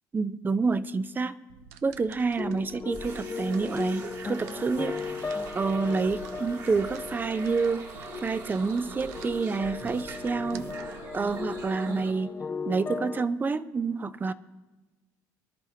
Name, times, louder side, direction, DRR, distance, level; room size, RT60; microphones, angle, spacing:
voice 1, 0.1-1.4 1.8-5.0 5.3-10.7 11.1-12.3 12.6-14.3, right 4 dB, 25° right, 15 dB, 0.5 m, -28 dB
sound 1, 1.5-11.7, right 8 dB, 85° right, 0.5 m, -51 dB
sound 2, 2.4-13.3, left 4 dB, 25° left, 0.5 m, -37 dB
sound 3, 2.9-12.1, right 4 dB, 50° right, 2.5 m, -42 dB
23.5 x 11.5 x 2.8 m, 1.2 s
supercardioid pair, 85°, 8 cm